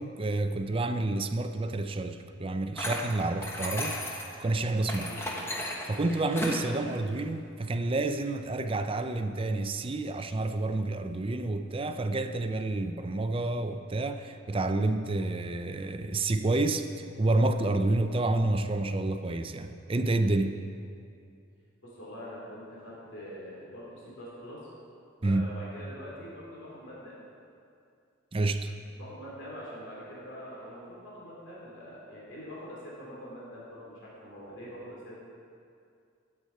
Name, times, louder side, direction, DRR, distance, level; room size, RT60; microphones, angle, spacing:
voice 1, 0.0-5.1 5.9-20.6 25.2-25.5 28.3-28.7, right 2 dB, 25° right, 8 dB, 0.5 m, -29 dB
sound 1, 2.8-4.4 4.9-6.7, left 1 dB, 10° left, 1.3 m, -35 dB
voice 2, 21.8-24.6 25.2-27.2 28.9-35.2, equal, 65° left, -7 dB, 3.3 m, -44 dB
13.5 x 8.7 x 4.6 m, 2.4 s
head